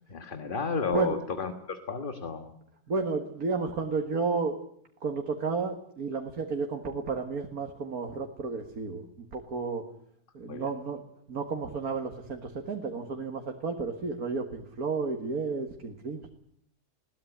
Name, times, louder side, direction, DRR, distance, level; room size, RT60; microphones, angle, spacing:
voice 1, 0.1-2.5 10.5-10.8, left 5 dB, 35° left, 8 dB, 1.5 m, -32 dB
voice 2, 2.9-4.6 5.0-9.8 10.3-11.0 11.3-16.3, right 4 dB, 65° right, 4 dB, 2.3 m, -32 dB
21.0 x 17.5 x 9.9 m, 0.67 s
omnidirectional pair, 1.7 m